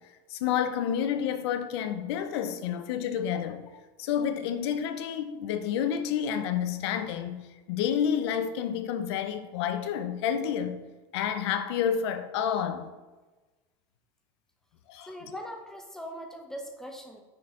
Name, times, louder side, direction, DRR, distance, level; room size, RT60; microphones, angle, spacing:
voice 1, 0.3-3.6 4.0-10.8 11.1-12.9 14.9-15.3, left 8 dB, 90° left, 0.6 m, -29 dB
voice 2, 15.1-17.2, equal, 5° left, 0.8 m, -41 dB
6.1 x 4.7 x 3.7 m
supercardioid pair, 140°, 13 cm